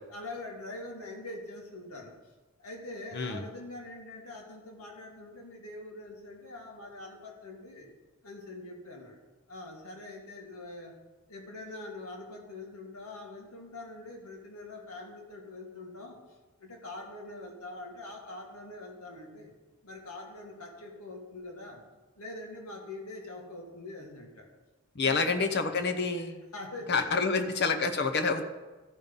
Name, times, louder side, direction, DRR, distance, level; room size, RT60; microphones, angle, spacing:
voice 1, 0.1-2.1 2.6-7.9 8.2-9.2 9.5-11.0 11.3-19.5 19.8-21.8 22.2-24.5 25.0-25.4 25.7-25.8 26.2-26.3 26.5-27.4, left 2 dB, 80° left, 0 dB, 2.1 m, -44 dB
voice 2, 24.9-26.4 26.9-28.4, left 4 dB, 50° left, 6 dB, 0.8 m, -28 dB
14.0 x 5.5 x 5.5 m, 1.2 s
head